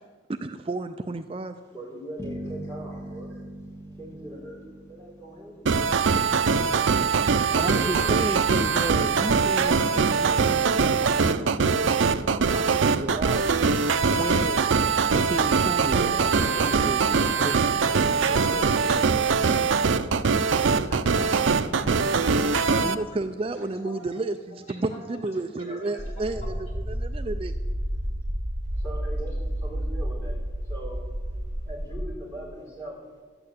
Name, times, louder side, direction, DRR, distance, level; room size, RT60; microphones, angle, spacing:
voice 1, 0.4-1.5 7.5-13.5 14.1-14.7 15.1-16.2 16.6-17.5 22.8-26.6 26.9-27.5, right 2 dB, 30° right, 8 dB, 0.4 m, -32 dB
voice 2, 1.6-3.5 3.9-6.0 15.9-17.0 17.9-19.2 28.7-31.1 31.6-33.1, right 1 dB, 15° left, -4 dB, 4.3 m, -41 dB
sound 1, 2.2-6.2, right 1 dB, 10° right, 2.1 m, -40 dB
sound 2, 5.7-22.9, right 5 dB, 75° right, 0.6 m, -22 dB
voice 3, 20.2-23.2 23.5-24.1 24.5-26.6, left 1 dB, 35° left, -5 dB, 4.9 m, -44 dB
sound 3, 26.0-32.1, equal, 50° right, 1.9 m, -31 dB
12.5 x 8.9 x 8.5 m, 1.5 s
head